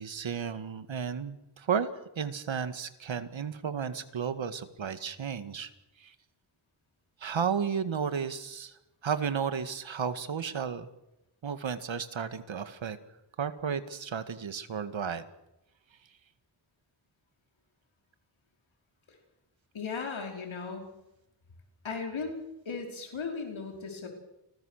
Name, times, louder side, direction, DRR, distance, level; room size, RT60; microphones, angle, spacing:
voice 1, 0.0-1.9 2.2-5.7 6.0-6.1 7.2-10.9 11.4-13.0 13.4-15.3, right 7 dB, 75° right, 11 dB, 2.0 m, -33 dB
voice 2, 19.7-20.9 21.8-24.1, left 4 dB, 85° left, 2 dB, 5.2 m, -36 dB
30.0 x 20.5 x 6.7 m, 0.89 s
wide cardioid pair, 110°, 46 cm